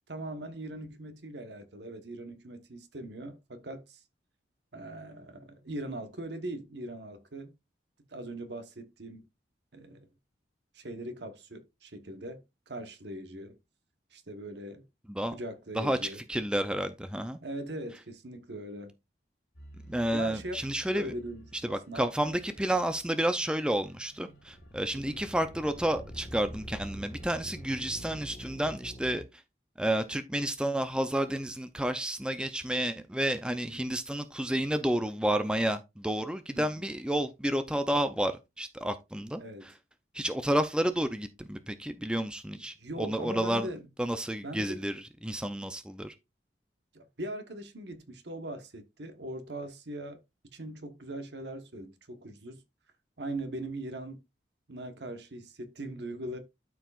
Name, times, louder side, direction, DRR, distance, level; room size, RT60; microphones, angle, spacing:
voice 1, 0.1-4.0 4.7-7.5 8.1-9.2 9.7-10.1 10.7-13.6 14.1-14.9 15.3-16.2 17.4-18.9 20.1-20.6 20.9-22.3 24.9-25.2 33.7-34.0 36.5-36.9 39.4-39.8 42.6-43.9 44.4-44.9 46.9-50.2 50.5-52.6 53.2-54.2 54.7-56.4, right 1 dB, 70° right, 1.2 m, -40 dB
voice 2, 15.8-17.4 19.9-21.1 21.6-29.2 29.8-39.4 40.1-43.7 44.0-46.1, right 1 dB, 5° right, 0.5 m, -30 dB
sound 1, 19.5-28.3, right 1 dB, 75° left, 2.5 m, -56 dB
sound 2, 24.2-29.2, equal, 30° left, 1.6 m, -45 dB
12.5 x 4.7 x 2.4 m
head